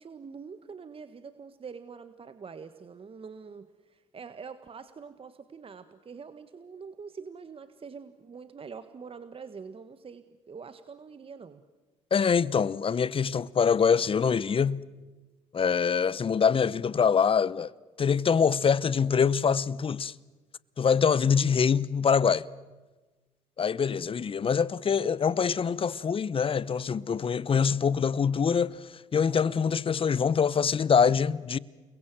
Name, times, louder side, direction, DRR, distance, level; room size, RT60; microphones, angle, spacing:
voice 1, 0.0-11.6, right 5 dB, 35° right, 1.5 m, -45 dB
voice 2, 12.1-14.8 15.5-17.7 18.0-20.1 20.8-22.5 23.6-31.6, left 6 dB, 35° left, 0.9 m, -24 dB
29.5 x 22.0 x 7.6 m
hypercardioid pair, 60°, 15 cm